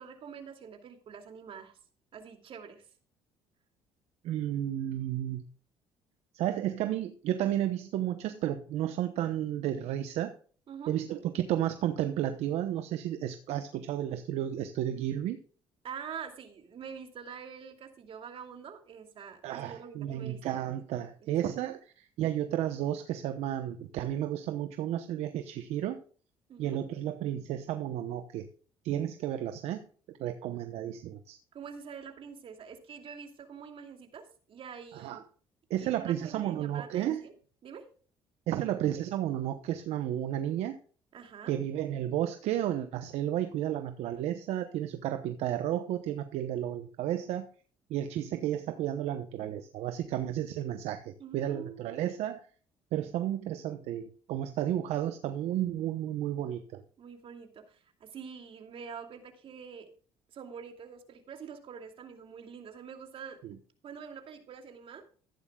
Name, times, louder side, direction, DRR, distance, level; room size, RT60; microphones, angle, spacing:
voice 1, 0.0-1.7 2.1-2.9 10.7-10.9 15.8-20.7 26.5-26.8 31.5-35.2 35.8-37.3 37.6-37.8 41.1-41.6 51.2-52.0 57.0-59.9 60.3-63.4 63.8-65.0, right 7 dB, 55° right, 5 dB, 2.6 m, -45 dB
voice 2, 4.2-5.4 6.3-10.3 10.9-15.4 19.4-26.0 26.6-28.5 28.8-29.9 30.2-31.4 34.9-35.2 35.7-37.2 38.5-40.8 41.5-47.4 47.9-52.4 52.9-56.8 63.4-63.6, right 11 dB, 75° right, 9 dB, 0.9 m, -32 dB
14.5 x 11.0 x 2.4 m, 0.42 s
supercardioid pair, 80°, 11 cm